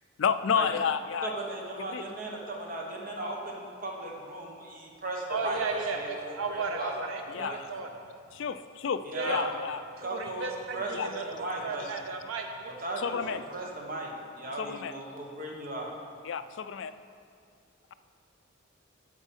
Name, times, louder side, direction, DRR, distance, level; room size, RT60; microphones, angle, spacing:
voice 1, 0.2-1.3 1.9-2.1 7.3-7.7 8.3-9.8 10.9-11.1 11.8-11.9 13.0-13.4 14.6-14.9 16.2-16.9, left 7 dB, 65° left, 12 dB, 0.4 m, -31 dB
voice 2, 1.2-6.9 7.4-7.6 9.0-9.5 10.0-11.9 12.8-15.9, right 1 dB, 40° right, -1 dB, 1.3 m, -37 dB
voice 3, 5.3-7.9 9.1-9.5 10.0-11.4 11.6-12.7 13.2-13.7, right 4 dB, 80° right, 3 dB, 0.6 m, -35 dB
8.2 x 7.1 x 5.5 m, 2.3 s
head